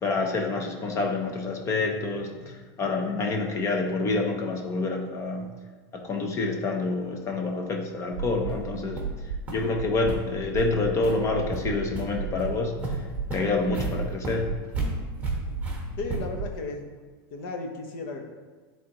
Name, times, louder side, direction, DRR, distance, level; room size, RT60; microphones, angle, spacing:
voice 1, 0.0-5.5 5.9-9.0 9.5-12.8 13.3-14.5, left 3 dB, 25° left, 3 dB, 0.8 m, -27 dB
sound 1, 8.1-16.6, right 5 dB, 80° right, 0.4 m, -35 dB
sound 2, 8.5-8.6 9.0-9.1 9.5-9.6 10.0-10.1 10.6-10.7 11.0-11.2 11.5-12.0 12.4-12.5 12.8-16.5, right 1 dB, 10° right, 1.3 m, -33 dB
voice 2, 16.0-16.9 17.3-18.2, left 3 dB, 50° left, 4 dB, 1.0 m, -34 dB
10.0 x 3.5 x 3.0 m, 1.4 s
supercardioid pair, 150°, 13 cm